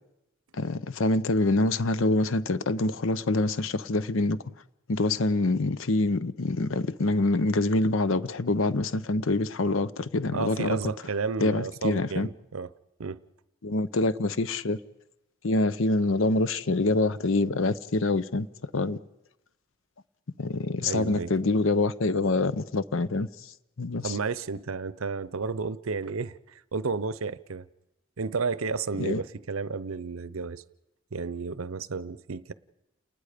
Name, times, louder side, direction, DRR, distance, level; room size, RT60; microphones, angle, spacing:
voice 1, 0.5-4.4 4.9-10.8 11.4-12.3 13.6-14.8 15.4-19.0 20.4-23.3 23.8-24.1 29.0-29.2, left 2 dB, 70° left, 0.7 m, -25 dB
voice 2, 10.3-12.7 13.0-13.2 20.8-21.3 24.0-27.7 28.2-30.6 31.1-32.5, right 4 dB, 80° right, 0.7 m, -32 dB
30.0 x 19.5 x 5.1 m
head